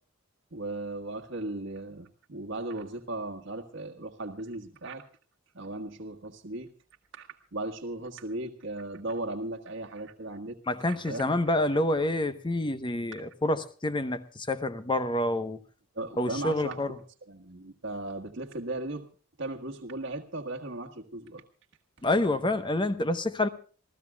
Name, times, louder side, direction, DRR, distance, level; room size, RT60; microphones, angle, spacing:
voice 1, 0.5-5.0 5.5-6.7 7.1-10.6 10.8-11.3 15.9-16.8 17.3-19.1 19.4-21.4, right 2 dB, 65° right, 1.6 m, -37 dB
voice 2, 10.7-15.6 16.2-17.0 22.0-23.5, left 1 dB, 25° left, 0.9 m, -28 dB
28.0 x 15.5 x 2.3 m
head